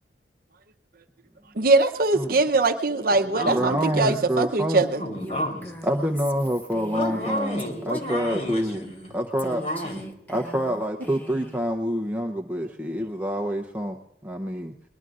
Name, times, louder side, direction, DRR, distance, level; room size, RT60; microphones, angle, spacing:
voice 1, 1.5-5.0, right 3 dB, 55° right, 7 dB, 0.8 m, -22 dB
voice 2, 2.9-4.3 4.9-5.7 6.9-10.1, equal, 40° left, 2 dB, 3.6 m, -32 dB
voice 3, 3.4-4.8 5.8-8.9 9.1-9.6 10.3-14.0 14.2-14.7, equal, 10° right, 2 dB, 0.7 m, -27 dB
Female speech woman speaking, 5.2-8.5 9.4-11.6, equal, 10° left, 1.2 m, -41 dB
21.5 x 21.5 x 2.5 m, 0.84 s
head